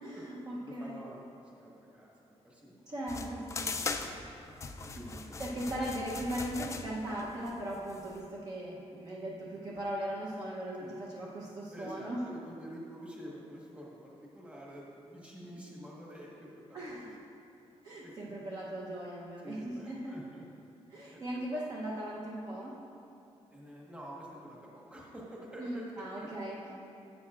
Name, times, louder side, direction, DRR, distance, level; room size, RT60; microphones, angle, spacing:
voice 1, 0.0-1.0 2.9-3.7 4.9-5.0 5.4-12.2 16.7-17.1 17.8-20.2 20.9-22.8 25.6-26.7, right 1 dB, 35° right, -5 dB, 0.8 m, -38 dB
voice 2, 0.6-2.7 3.2-4.3 4.9-5.4 10.8-11.0 11.7-16.8 17.3-17.4 18.0-18.4 19.4-20.4 21.1-21.4 23.5-26.7, equal, 10° right, -4 dB, 1.3 m, -48 dB
sound 1, 3.1-8.2, left 4 dB, 25° left, 0.4 m, -40 dB
11.0 x 8.5 x 2.4 m, 2.7 s
wide cardioid pair, 175°, 11 cm